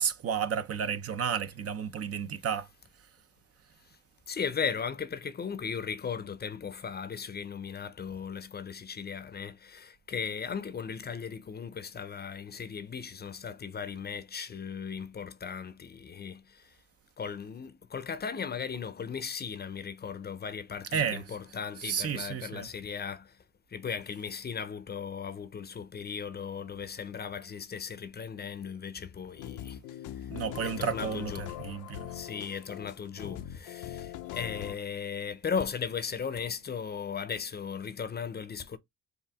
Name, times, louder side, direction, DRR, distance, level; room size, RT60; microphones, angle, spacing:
voice 1, 0.0-2.7 20.9-21.2 21.8-22.7 30.3-32.1, right 7 dB, 50° right, 0.6 m, -32 dB
voice 2, 4.3-16.8 17.2-23.4 23.7-30.3 30.6-31.5 32.0-38.8, left 6 dB, 35° left, 0.6 m, -37 dB
sound 1, 29.3-34.8, left 11 dB, 90° left, 0.6 m, -41 dB
4.8 x 2.6 x 3.4 m
cardioid pair, 90°, 30 cm